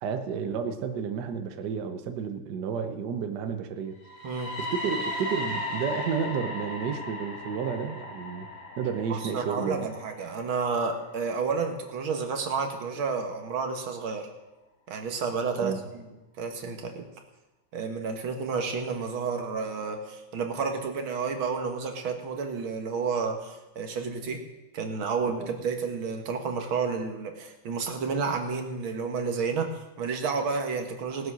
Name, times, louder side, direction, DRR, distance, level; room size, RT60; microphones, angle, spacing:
voice 1, 0.0-4.0 4.6-8.5 8.8-9.9 15.6-15.8 25.4-25.5, right 6 dB, 65° right, 7 dB, 1.4 m, -31 dB
sound 1, 4.0-11.9, left 1 dB, 40° left, 2.6 m, -37 dB
voice 2, 9.1-14.3 14.9-17.1 17.7-24.4 24.7-31.3, right 5 dB, 90° right, 5 dB, 2.2 m, -31 dB
18.0 x 7.9 x 6.2 m, 1.1 s
omnidirectional pair, 2.2 m